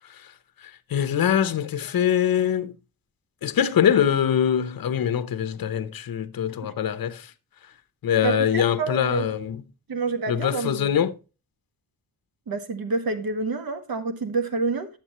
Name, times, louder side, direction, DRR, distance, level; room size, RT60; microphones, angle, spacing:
voice 1, 0.6-2.7 3.4-7.3 8.0-9.6 10.3-11.1, left 9 dB, 70° left, 0.9 m, -23 dB
voice 2, 8.2-9.3 9.9-10.9 12.5-14.9, right 4 dB, 70° right, 1.7 m, -28 dB
11.5 x 7.4 x 3.0 m
wide cardioid pair, 140°, 37 cm